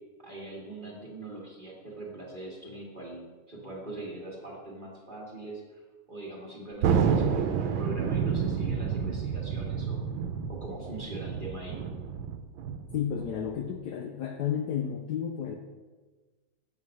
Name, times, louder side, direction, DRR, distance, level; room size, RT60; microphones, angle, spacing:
voice 1, 0.2-5.8 6.1-10.0 10.5-11.8, right 2 dB, 30° right, -4 dB, 1.6 m, -42 dB
Thunder, 6.8-13.7, right 7 dB, 85° right, 1.4 m, -29 dB
voice 2, 12.9-15.6, left 8 dB, 70° left, 3 dB, 1.0 m, -32 dB
7.4 x 4.0 x 6.3 m, 1.3 s
omnidirectional pair, 2.1 m